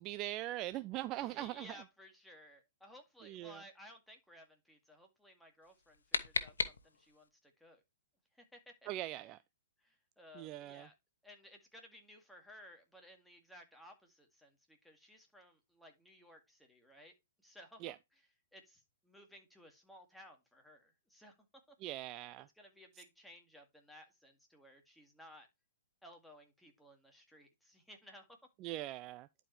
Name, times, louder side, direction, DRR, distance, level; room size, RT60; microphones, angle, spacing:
voice 1, 0.0-1.8 3.2-3.6 8.9-9.4 10.3-10.9 17.8-18.0 21.8-22.5 23.0-23.1 28.6-29.3, right 15 dB, 30° right, 0.4 m, -41 dB
voice 2, 1.2-7.8 8.3-8.9 9.8-10.9 11.2-17.1 17.4-17.9 18.5-21.3 21.7-21.8 22.6-25.5 26.0-28.4, equal, ahead, 2.1 m, -58 dB
sound 1, 5.6-7.3, left 5 dB, 90° left, 1.2 m, -38 dB
11.0 x 4.9 x 3.1 m
hypercardioid pair, 135°, 0 cm